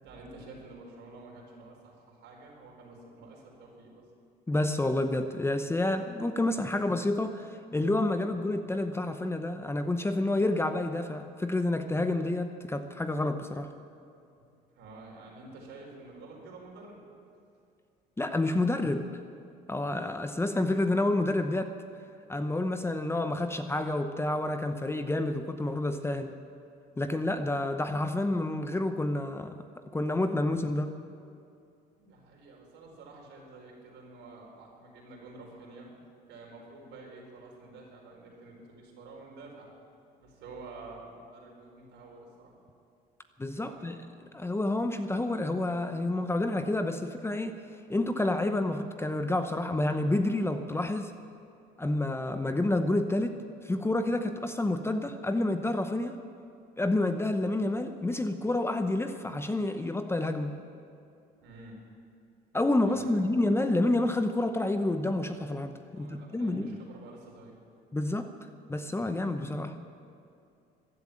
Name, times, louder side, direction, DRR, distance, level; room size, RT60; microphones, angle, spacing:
voice 1, 0.0-4.0 8.3-8.4 14.7-17.0 32.0-35.9 36.3-39.7 40.2-42.5 43.6-44.1 61.4-61.8 62.9-63.2 65.9-67.5, right 3 dB, 70° right, -1 dB, 4.6 m, -49 dB
voice 2, 4.5-13.7 18.2-19.1 19.7-21.8 22.3-26.3 27.0-29.6 29.9-30.9 43.4-44.0 44.3-47.6 47.9-51.1 51.8-56.2 56.8-60.6 62.5-66.8 67.9-68.3 68.7-69.7, left 2 dB, 15° left, 8 dB, 0.9 m, -29 dB
15.0 x 10.5 x 8.8 m, 2.5 s
supercardioid pair, 85°, 19 cm